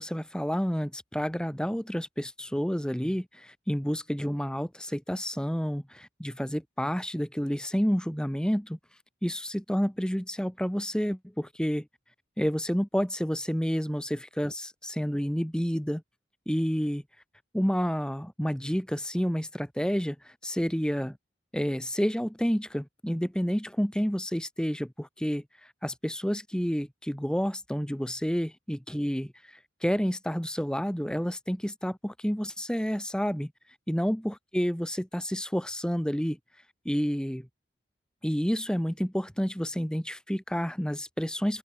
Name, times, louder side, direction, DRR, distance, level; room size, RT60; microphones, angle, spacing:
voice 1, 0.0-8.8 9.2-11.9 12.4-16.0 16.5-17.0 17.5-21.1 21.5-33.5 33.9-36.4 36.8-37.5 38.2-41.6, equal, 5° left, 1.4 m, -29 dB
open air
head